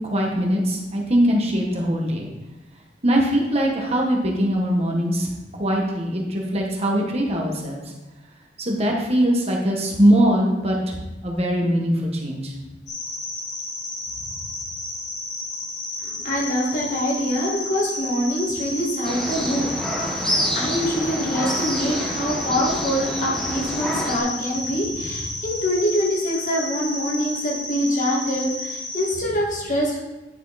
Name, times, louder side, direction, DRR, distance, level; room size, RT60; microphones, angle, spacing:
voice 1, 0.0-2.3 3.0-5.3 5.6-7.8 8.6-11.0 11.2-12.5, equal, 35° right, -1 dB, 1.5 m, -21 dB
sound 1, 12.9-29.1, left 2 dB, 85° left, 2.8 m, -32 dB
voice 2, 16.0-19.7 20.0-30.0, equal, 45° left, -3 dB, 2.1 m, -25 dB
sound 2, 19.0-24.2, equal, 5° left, 1.3 m, -27 dB
10.0 x 5.6 x 4.2 m, 1.1 s
head